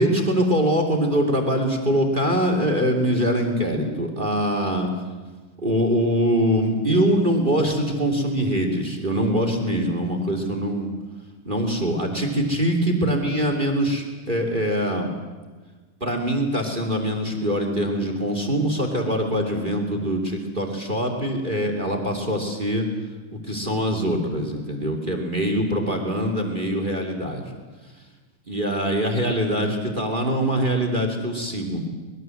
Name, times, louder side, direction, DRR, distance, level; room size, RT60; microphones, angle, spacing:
voice 1, 0.0-4.9 5.6-10.9 11.4-15.1 16.0-22.9 23.4-27.6 28.5-31.8, equal, 15° right, 4 dB, 2.6 m, -23 dB
24.5 x 21.5 x 7.8 m, 1.4 s
omnidirectional pair, 4.0 m